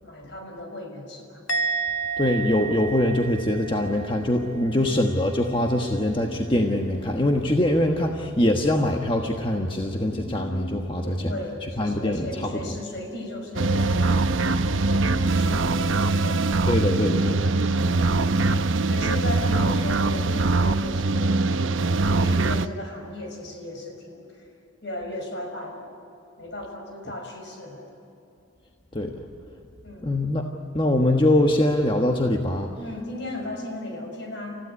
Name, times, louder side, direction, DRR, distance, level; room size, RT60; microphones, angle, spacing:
voice 1, 0.0-1.4 4.6-5.0 11.0-16.4 17.6-24.5 24.8-25.9 26.4-27.9 29.8-30.2 32.8-34.6, left 1 dB, 60° left, 2 dB, 5.8 m, -36 dB
Musical instrument, 1.5-4.9 5.1-5.6, right 5 dB, 85° left, 1.4 m, -31 dB
voice 2, 2.2-11.3 11.8-12.3 16.7-17.7 28.9-29.1 30.0-30.4 30.7-32.7, left 1 dB, 25° left, 2 dB, 1.3 m, -23 dB
sound 1, 13.5-22.7, right 3 dB, 75° right, 0.8 m, -22 dB
29.0 x 15.5 x 9.8 m, 2.8 s
head